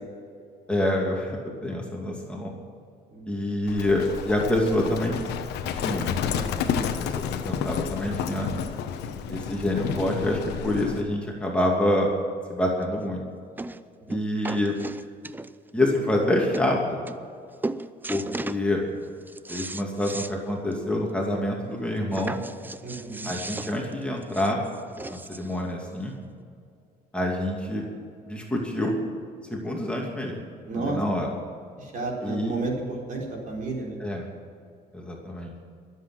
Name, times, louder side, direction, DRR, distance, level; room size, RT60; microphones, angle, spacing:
voice 1, 0.7-2.5 3.3-5.2 5.7-6.1 6.6-6.8 7.4-8.5 9.3-12.1 12.5-13.2 14.1-14.8 15.7-17.0 18.1-18.8 19.5-22.4 23.2-24.6 25.1-26.1 27.1-27.8 28.3-29.0 29.5-30.4 30.7-31.3 32.2-32.5 34.0-34.3 34.9-35.5, left 1 dB, 5° left, -1 dB, 2.6 m, -26 dB
Livestock farm animals working animals, 3.7-11.0, left 7 dB, 80° left, 1.2 m, -30 dB
sound 1, 12.8-12.9 13.6-13.8 14.1-15.7 16.2-16.3 16.5-16.7 17.1-17.4 17.6-18.6 19.0-20.4 20.7-20.8 21.1-21.2 22.1-25.6 26.4-26.5, right 2 dB, 10° right, 0.5 m, -36 dB
voice 2, 22.8-23.3 30.7-31.0 31.8-34.0, right 3 dB, 50° right, -1 dB, 4.3 m, -31 dB
22.5 x 8.3 x 6.1 m, 2.3 s
cardioid pair, 110°, 17 cm